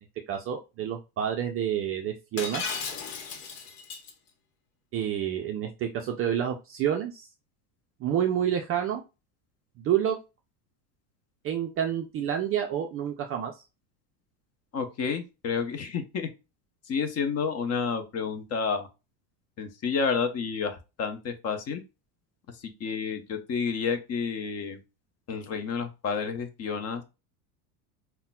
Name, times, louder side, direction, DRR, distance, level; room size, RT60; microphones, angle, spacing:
voice 1, 0.3-2.6 4.9-7.3 8.0-9.0 9.8-10.2 11.4-13.5, right 9 dB, 30° right, 4 dB, 0.4 m, -28 dB
Shatter, 2.4-4.1, left 5 dB, 75° left, 1.0 m, -35 dB
voice 2, 14.7-16.3 16.9-18.9 19.6-21.8 22.8-24.8 25.3-27.0, left 5 dB, 35° left, 7 dB, 0.7 m, -30 dB
5.5 x 2.2 x 2.2 m, 0.27 s
supercardioid pair, 105°, 47 cm